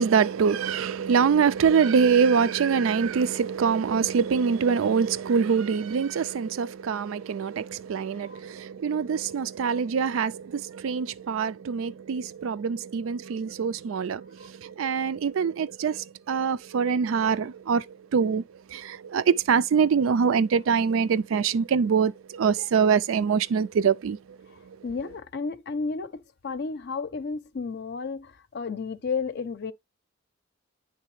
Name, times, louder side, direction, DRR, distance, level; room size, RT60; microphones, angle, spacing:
voice 1, 0.0-18.4 18.7-24.4, right 6 dB, 85° right, 0.4 m, -24 dB
voice 2, 24.5-29.7, left 4 dB, 55° left, 0.6 m, -33 dB
9.8 x 3.3 x 3.1 m
head